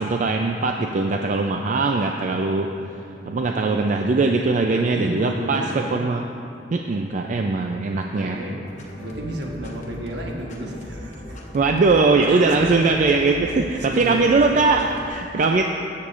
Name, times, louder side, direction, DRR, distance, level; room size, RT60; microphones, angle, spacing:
voice 1, 0.0-2.7 3.3-6.2 6.7-8.4 11.5-15.6, right 3 dB, 45° right, 3 dB, 0.4 m, -20 dB
voice 2, 4.7-6.0 8.1-8.6 9.0-11.4 12.3-13.0 13.4-14.6, right 1 dB, 70° right, 0 dB, 1.2 m, -33 dB
sound 1, 8.6-15.1, left 1 dB, 40° left, 1.0 m, -39 dB
14.0 x 8.5 x 2.5 m, 2.6 s
head